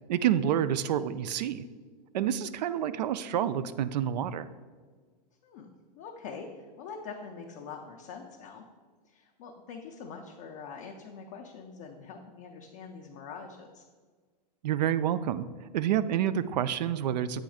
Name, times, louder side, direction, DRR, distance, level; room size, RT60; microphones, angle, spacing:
voice 1, 0.1-1.7 2.1-4.5 14.6-15.5 15.7-17.4, right 10 dB, 85° right, 14 dB, 0.4 m, -28 dB
voice 2, 5.4-8.6 9.0-13.8, left 5 dB, 30° left, 1 dB, 0.3 m, -44 dB
7.7 x 3.1 x 4.9 m, 1.5 s
supercardioid pair, 175°, 21 cm